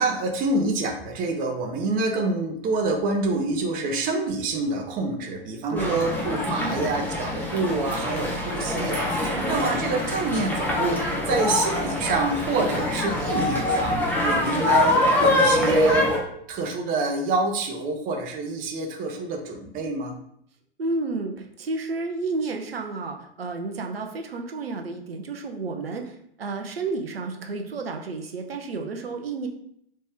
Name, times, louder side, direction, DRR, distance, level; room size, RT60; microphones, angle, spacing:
voice 1, 0.0-16.1 16.5-20.1, right 3 dB, 30° right, 2 dB, 0.8 m, -27 dB
voice 2, 5.7-6.0 6.6-6.9 9.4-9.7 20.8-29.5, right 3 dB, 75° right, 4 dB, 0.7 m, -31 dB
sound 1, 5.8-16.2, left 2 dB, 5° left, 1.0 m, -24 dB
4.1 x 3.2 x 3.5 m, 0.71 s
figure-of-eight pair, 100°, 30 cm